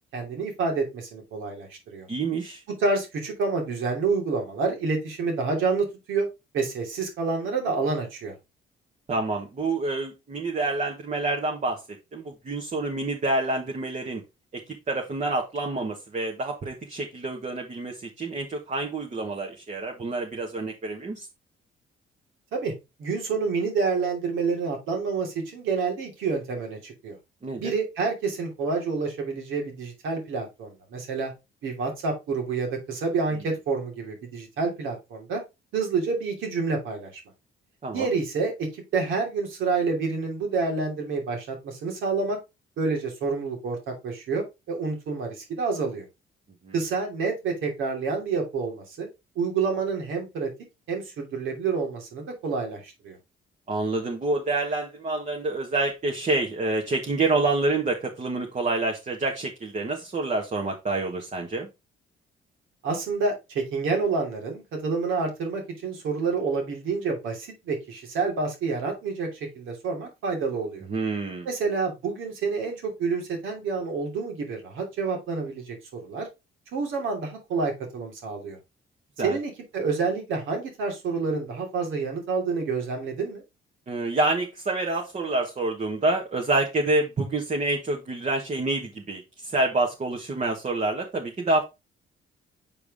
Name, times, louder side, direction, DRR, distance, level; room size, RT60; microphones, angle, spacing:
voice 1, 0.1-2.1 2.8-6.3 6.5-8.3 22.5-22.7 23.0-27.2 27.6-31.3 31.6-35.4 35.7-37.2 37.9-42.4 42.8-46.1 46.7-49.1 49.3-50.5 50.9-53.2 62.8-69.3 69.5-70.9 71.4-75.8 76.0-76.3 76.7-78.6 79.2-83.4, right 4 dB, 80° right, 2 dB, 2.8 m, -28 dB
voice 2, 2.1-2.6 9.1-11.8 12.1-14.2 14.5-21.3 27.4-27.7 37.8-38.1 46.6-46.7 53.7-61.7 70.9-71.5 79.2-79.4 83.9-91.6, right 2 dB, 35° right, 1 dB, 1.5 m, -27 dB
6.9 x 4.7 x 3.6 m, 0.24 s
cardioid pair, 90°, 20 cm